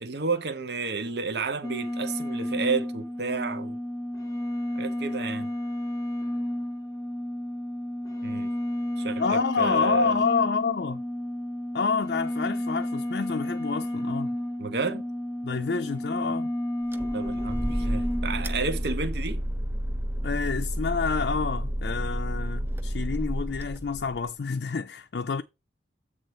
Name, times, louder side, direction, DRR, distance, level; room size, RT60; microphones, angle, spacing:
voice 1, 0.0-3.8 4.8-5.5 8.2-8.5 9.0-10.2 14.6-15.0 17.1-19.4, right 4 dB, 60° right, 0.8 m, -31 dB
sound 1, 1.6-18.9, left 1 dB, 20° left, 0.8 m, -32 dB
voice 2, 9.2-11.0 11.7-14.4 15.4-16.5 20.2-25.4, left 5 dB, 65° left, 0.4 m, -28 dB
sound 2, 16.9-24.3, equal, 10° right, 0.4 m, -31 dB
8.0 x 3.4 x 6.3 m
head